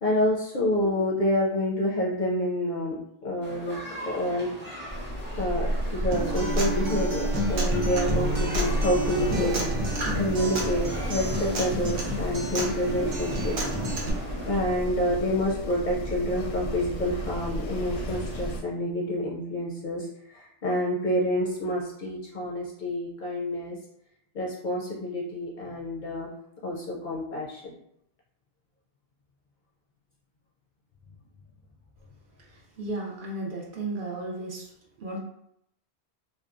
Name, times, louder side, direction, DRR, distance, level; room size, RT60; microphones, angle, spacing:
voice 1, 0.0-2.9 3.2-4.5 5.4-9.6 10.1-13.7 14.5-23.8 24.3-26.3 26.6-27.7, left 1 dB, 60° left, -3 dB, 0.5 m, -28 dB
sound 1, 3.4-14.6, equal, 10° right, 0.7 m, -41 dB
Wind, 4.9-18.6, equal, 85° left, 0.9 m, -31 dB
Acoustic guitar, 6.1-14.1, right 2 dB, 90° right, 0.9 m, -31 dB
voice 2, 32.8-34.7 35.0-35.2, right 2 dB, 60° right, -2 dB, 0.6 m, -34 dB
2.8 x 2.1 x 2.4 m, 0.75 s
omnidirectional pair, 1.1 m